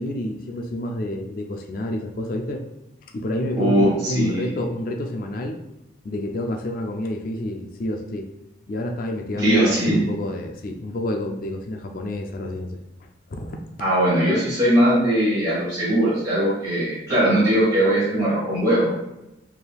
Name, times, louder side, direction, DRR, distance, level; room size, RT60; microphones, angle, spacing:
voice 1, 0.0-2.6 3.1-5.6 6.0-8.3 8.7-12.7 13.3-13.6, left 1 dB, 45° left, 3 dB, 0.4 m, -29 dB
voice 2, 3.6-4.4 9.4-10.0 13.8-18.9, right 1 dB, 20° right, -9 dB, 1.2 m, -20 dB
4.4 x 3.4 x 2.3 m, 0.91 s
head